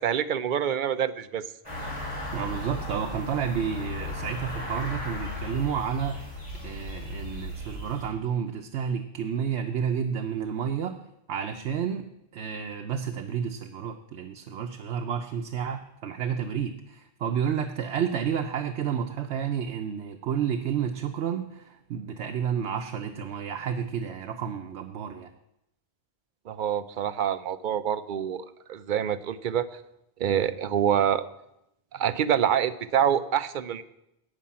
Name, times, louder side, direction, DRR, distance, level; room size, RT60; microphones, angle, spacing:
voice 1, 0.0-1.4 26.5-29.7 30.2-31.2 31.9-33.8, right 9 dB, 60° right, 13 dB, 0.6 m, -26 dB
sound 1, 1.6-8.1, left 2 dB, 25° left, 3.7 m, -36 dB
voice 2, 2.3-11.0 11.3-25.3, right 8 dB, 85° right, 5 dB, 0.9 m, -31 dB
11.5 x 5.3 x 8.6 m, 0.83 s
omnidirectional pair, 1.1 m